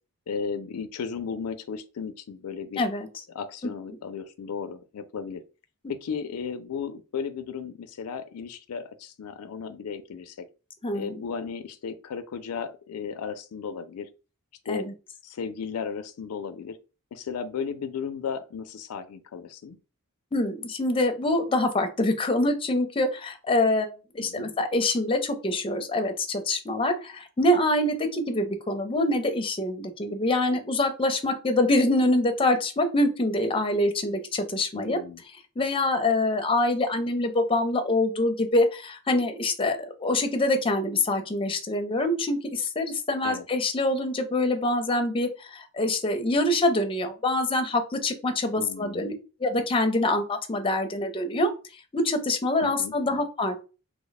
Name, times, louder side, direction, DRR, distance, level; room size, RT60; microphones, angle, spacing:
voice 1, 0.3-2.8 3.3-5.4 5.9-10.5 10.9-14.1 14.7-14.9 15.2-16.8 17.1-19.8 24.2-24.5 34.7-35.2 43.2-43.4 48.6-49.0 52.6-52.9, left 6 dB, 80° left, 0.4 m, -35 dB
voice 2, 2.8-3.1 10.8-11.2 14.7-14.9 20.3-35.0 35.6-49.1 49.4-51.5 51.9-53.6, left 2 dB, 25° left, 0.5 m, -25 dB
3.0 x 2.1 x 3.9 m
head